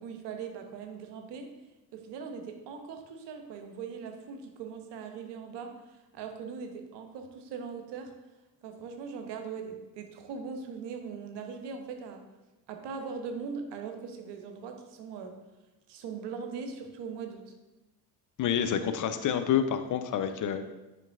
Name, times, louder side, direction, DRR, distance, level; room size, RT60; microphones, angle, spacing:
voice 1, 0.0-1.5 1.9-8.1 8.6-12.3 12.7-15.4 15.9-17.5, right 5 dB, 55° right, 5 dB, 1.0 m, -40 dB
voice 2, 18.4-20.7, left 8 dB, 40° left, 9 dB, 0.6 m, -28 dB
8.9 x 5.2 x 2.5 m, 1.0 s
figure-of-eight pair, 45°, 49 cm